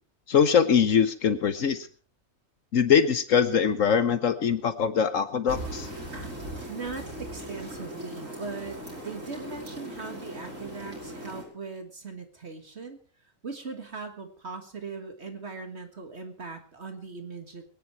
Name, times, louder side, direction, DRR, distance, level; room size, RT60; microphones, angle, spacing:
voice 1, 0.3-1.9 2.7-5.9, left 7 dB, 75° left, 11 dB, 1.4 m, -22 dB
sound 1, 5.5-11.4, right 1 dB, 75° right, 5.7 m, -39 dB
voice 2, 6.7-13.0 13.4-17.6, right 4 dB, 55° right, 5 dB, 1.9 m, -39 dB
22.5 x 10.0 x 4.5 m, 0.41 s
omnidirectional pair, 1.4 m